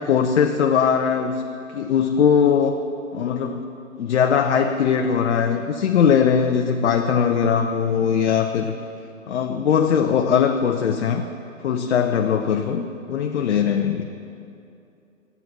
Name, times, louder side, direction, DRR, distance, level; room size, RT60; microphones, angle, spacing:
voice 1, 0.0-1.4 1.7-2.8 3.1-3.7 4.0-8.7 9.3-11.2 11.6-14.1, left 7 dB, 55° left, 5 dB, 0.7 m, -20 dB
12.5 x 8.2 x 5.8 m, 2.7 s
hypercardioid pair, 135°, 41 cm